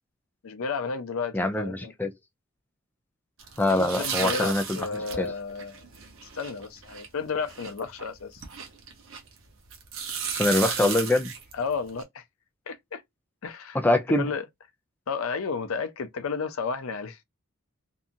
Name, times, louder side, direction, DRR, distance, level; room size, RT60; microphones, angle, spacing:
voice 1, 0.4-1.9 3.7-5.8 6.3-8.4 11.5-12.2 12.7-13.0 13.4-13.8 14.2-14.5 15.1-17.2, left 5 dB, 80° left, 0.5 m, -32 dB
voice 2, 1.3-2.1 3.6-4.6 5.2-5.3 10.4-11.3 13.7-14.3, left 1 dB, 10° left, 0.4 m, -23 dB
sound 1, 3.4-9.4 9.7-12.0, right 6 dB, 70° right, 0.8 m, -34 dB
2.7 x 2.4 x 2.5 m
head